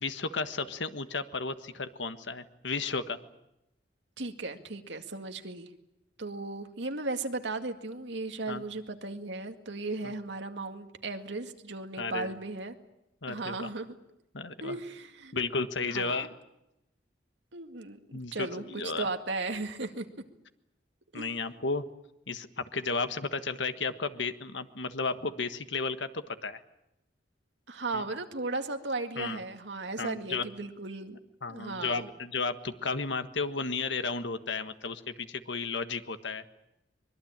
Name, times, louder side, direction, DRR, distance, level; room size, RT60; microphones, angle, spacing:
voice 1, 0.0-3.2 8.5-8.6 10.0-10.1 12.0-12.3 13.2-13.7 14.3-14.8 15.3-16.3 18.1-19.1 21.1-21.8 22.3-26.6 27.9-28.0 29.2-29.4 30.0-30.5 31.4-36.4, left 4 dB, 80° left, 10 dB, 1.5 m, -33 dB
voice 2, 4.2-5.7 6.2-12.8 13.3-13.9 14.6-15.3 15.9-16.3 17.5-18.0 18.3-20.1 21.1-21.3 27.7-31.2 31.5-32.1, right 3 dB, 75° right, 6 dB, 2.0 m, -36 dB
24.0 x 21.5 x 8.9 m, 0.87 s
head